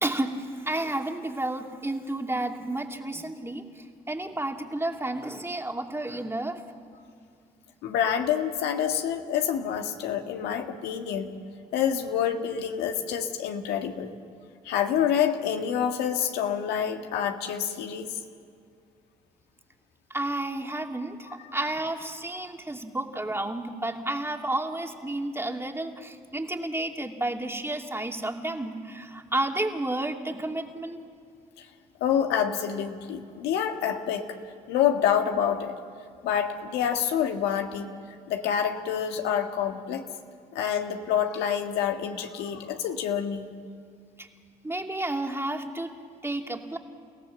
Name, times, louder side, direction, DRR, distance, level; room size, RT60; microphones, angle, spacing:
voice 1, 0.0-6.6 20.1-31.0 44.2-44.3 44.6-45.9 46.2-46.8, right 1 dB, 15° right, 3 dB, 2.7 m, -31 dB
voice 2, 7.8-11.3 11.7-14.1 14.7-18.1 32.0-34.3 34.7-35.8 36.2-37.9 38.3-40.0 40.5-43.5, left 8 dB, 80° left, 5 dB, 1.8 m, -27 dB
29.5 x 17.0 x 7.6 m, 2.3 s
hypercardioid pair, 50°, 17 cm